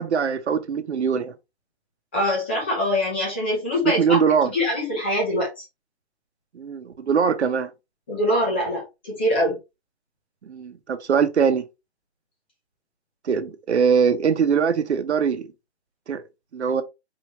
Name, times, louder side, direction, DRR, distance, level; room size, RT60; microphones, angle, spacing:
voice 1, 0.0-1.3 3.8-4.5 6.5-7.7 10.4-11.6 13.2-15.5 16.1-16.2 16.5-16.8, right 6 dB, 80° right, 1.1 m, -22 dB
voice 2, 2.1-5.6 8.1-9.6, left 1 dB, 10° left, 0.6 m, -24 dB
4.7 x 3.1 x 3.1 m
hypercardioid pair, 175°, 33 cm